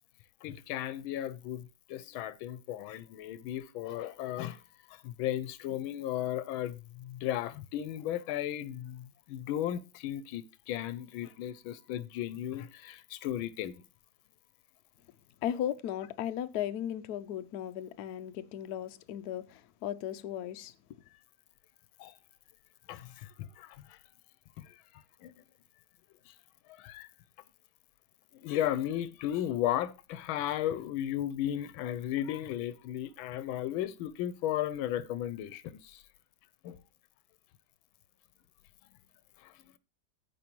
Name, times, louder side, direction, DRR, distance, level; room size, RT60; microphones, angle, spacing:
voice 1, 0.4-4.6 4.9-13.8 22.0-22.1 22.9-24.0 24.6-25.3 26.3-26.4 26.8-27.1 28.3-36.0 36.6-36.8 39.4-39.5, left 12 dB, 85° left, 1.4 m, -35 dB
voice 2, 15.4-20.7, left 10 dB, 70° left, 1.0 m, -36 dB
14.5 x 5.0 x 3.0 m
omnidirectional pair, 2.2 m